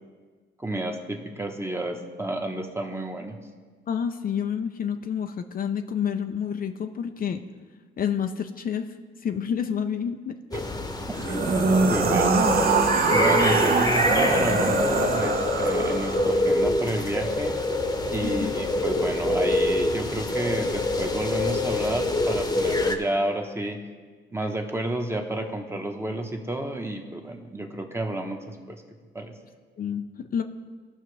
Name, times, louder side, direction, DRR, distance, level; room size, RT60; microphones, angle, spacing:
voice 1, 0.6-3.4 11.1-11.6 11.9-12.5 13.1-17.5 18.1-23.8 24.3-28.8 29.1-29.3, right 1 dB, 10° right, 3 dB, 1.1 m, -31 dB
voice 2, 3.9-7.4 8.0-8.9 9.2-10.4 18.2-18.6 29.8-30.4, left 8 dB, 45° left, 7 dB, 0.5 m, -29 dB
sound 1, 10.5-23.0, left 2 dB, 20° left, 1.0 m, -25 dB
sound 2, 11.1-16.4, right 4 dB, 50° right, 1.0 m, -23 dB
16.0 x 5.7 x 3.3 m, 1.5 s
cardioid pair, 90°, 20 cm